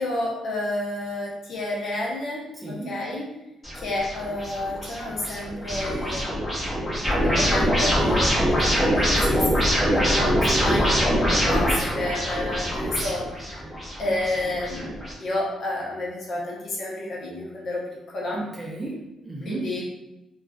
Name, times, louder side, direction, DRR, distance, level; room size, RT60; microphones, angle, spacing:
voice 1, 0.0-3.3 3.7-13.6 14.0-18.4 19.4-19.8, left 1 dB, 55° left, -3 dB, 0.7 m, -30 dB
voice 2, 2.5-3.0 10.4-10.7 18.3-19.7, right 2 dB, 15° right, -4 dB, 0.6 m, -34 dB
sound 1, 3.6-15.1, equal, 15° left, 0.9 m, -24 dB
2.4 x 2.3 x 2.3 m, 0.92 s
cardioid pair, 90°, 0 cm